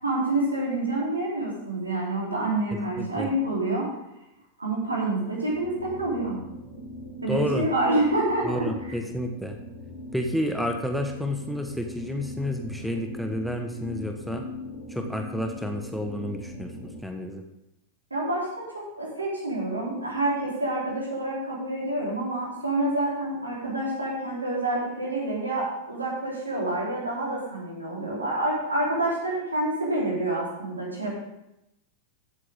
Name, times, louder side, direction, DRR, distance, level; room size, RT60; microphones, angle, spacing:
voice 1, 0.0-3.9 4.6-6.4 7.2-8.7 18.1-31.1, right 2 dB, 80° right, -4 dB, 4.3 m, -27 dB
voice 2, 2.7-3.3 7.3-7.6 8.4-9.6 10.1-14.4 14.9-16.7 17.0-17.4, left 1 dB, ahead, 4 dB, 1.2 m, -30 dB
sound 1, 5.5-17.0, left 1 dB, 65° left, 3.9 m, -40 dB
15.5 x 8.1 x 3.9 m, 0.87 s
figure-of-eight pair, 90°, 0 cm